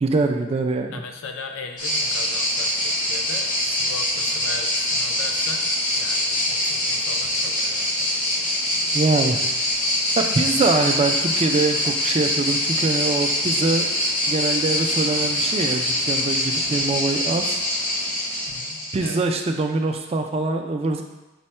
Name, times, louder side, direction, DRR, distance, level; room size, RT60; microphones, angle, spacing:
voice 1, 0.0-1.0 8.9-9.4 10.2-13.9 14.3-17.6 18.9-21.0, right 3 dB, 30° right, 4 dB, 0.3 m, -23 dB
voice 2, 0.9-8.5 18.5-19.2, left 4 dB, 80° left, 5 dB, 0.5 m, -39 dB
sound 1, 1.8-19.2, left 1 dB, 40° left, 0.7 m, -24 dB
5.3 x 2.1 x 4.2 m, 1.0 s
head